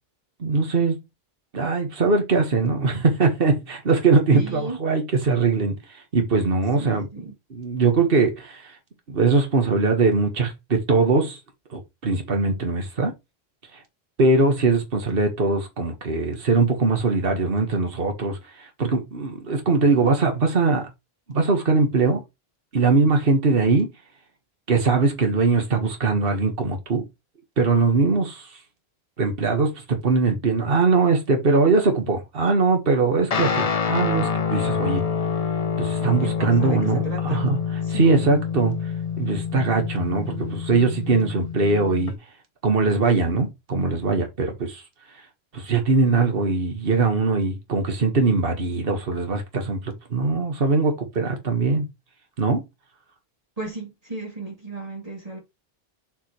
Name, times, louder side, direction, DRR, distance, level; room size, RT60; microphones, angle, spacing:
voice 1, 0.4-1.0 1.5-5.8 6.1-7.1 7.5-8.7 9.1-11.4 11.7-13.1 14.2-20.9 21.3-22.2 22.7-23.9 24.7-27.0 27.6-28.5 29.2-35.0 35.8-37.6 37.9-38.7 39.2-42.1 42.6-44.8 45.5-51.9 52.4-52.6, right 4 dB, 60° right, 1.7 m, -21 dB
voice 2, 4.3-4.8 6.8-7.3 36.2-37.5 37.8-38.3 53.6-55.4, right 3 dB, 35° right, 3.0 m, -34 dB
Guitar, 33.3-42.1, left 6 dB, 40° left, 0.8 m, -27 dB
7.8 x 4.9 x 3.1 m
omnidirectional pair, 1.1 m